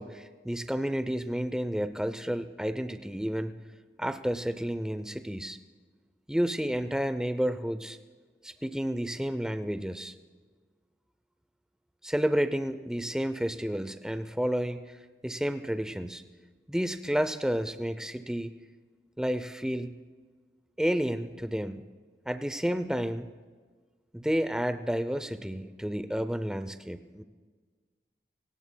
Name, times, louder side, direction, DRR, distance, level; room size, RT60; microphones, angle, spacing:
voice 1, 0.0-3.5 4.0-5.6 6.3-8.0 8.4-10.1 12.0-15.0 15.2-16.2 16.7-18.5 19.2-19.9 20.8-21.9 22.3-23.3 24.1-27.2, equal, 5° right, 11 dB, 0.5 m, -31 dB
25.0 x 18.0 x 2.2 m, 1.5 s
head